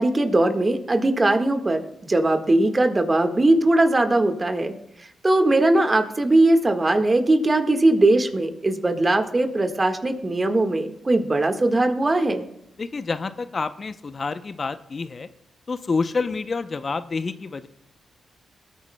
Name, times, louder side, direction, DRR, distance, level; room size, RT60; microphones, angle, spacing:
voice 1, 0.0-4.8 5.2-12.5, right 2 dB, 30° right, 6 dB, 1.5 m, -20 dB
voice 2, 12.8-15.3 15.7-17.7, left 4 dB, 45° left, 12 dB, 0.6 m, -28 dB
21.5 x 9.3 x 2.2 m, 0.80 s
supercardioid pair, 55°, 0 cm